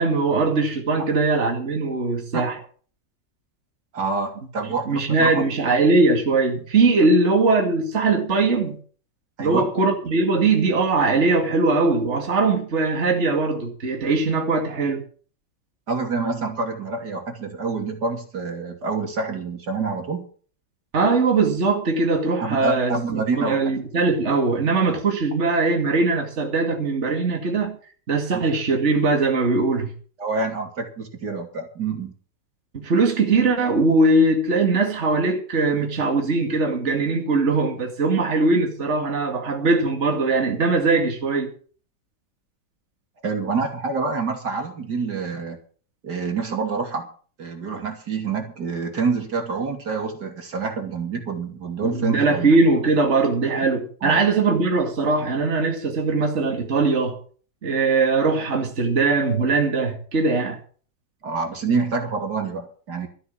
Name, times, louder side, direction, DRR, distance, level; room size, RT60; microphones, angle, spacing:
voice 1, 0.0-2.6 4.9-8.8 9.4-15.0 20.9-27.8 28.1-29.9 32.7-41.5 51.8-57.2 57.6-60.6, right 3 dB, 40° right, 2.4 m, -21 dB
voice 2, 3.9-5.4 9.4-9.7 15.9-20.3 22.4-23.8 28.3-28.4 30.2-32.1 43.2-45.6 46.0-47.1 47.4-52.5 54.0-54.3 61.2-63.1, right 4 dB, 65° right, 3.1 m, -27 dB
13.5 x 8.6 x 7.3 m
omnidirectional pair, 1.9 m